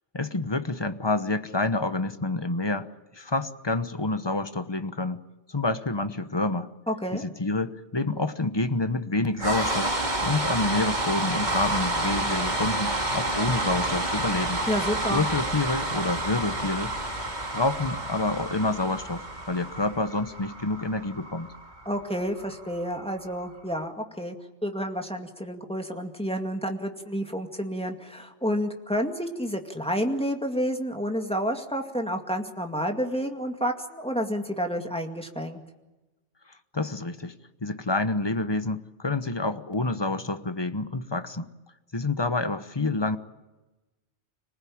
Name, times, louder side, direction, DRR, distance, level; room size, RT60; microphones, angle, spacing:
voice 1, 0.1-2.9 3.1-5.2 5.5-6.7 7.1-9.9 10.2-14.6 15.1-16.9 17.5-21.5 36.7-37.3 37.6-41.5 41.9-43.2, left 2 dB, 25° left, 10 dB, 1.0 m, -28 dB
voice 2, 6.9-7.2 14.7-15.3 21.9-24.4 24.6-35.6, equal, 5° left, 3 dB, 2.2 m, -30 dB
sound 1, 9.4-23.5, right 1 dB, 40° right, 2.5 m, -29 dB
26.0 x 19.5 x 8.6 m, 1.1 s
omnidirectional pair, 1.2 m